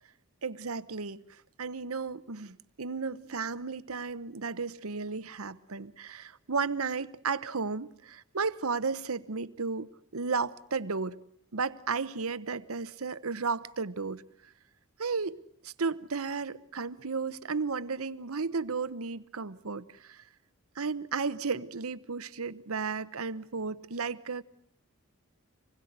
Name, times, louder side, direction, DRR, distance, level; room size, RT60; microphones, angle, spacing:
voice 1, 0.4-1.2 1.6-11.2 11.5-14.2 15.0-15.4 15.6-20.2 20.8-24.4, right 4 dB, 80° right, 1.0 m, -34 dB
26.0 x 21.0 x 8.1 m
head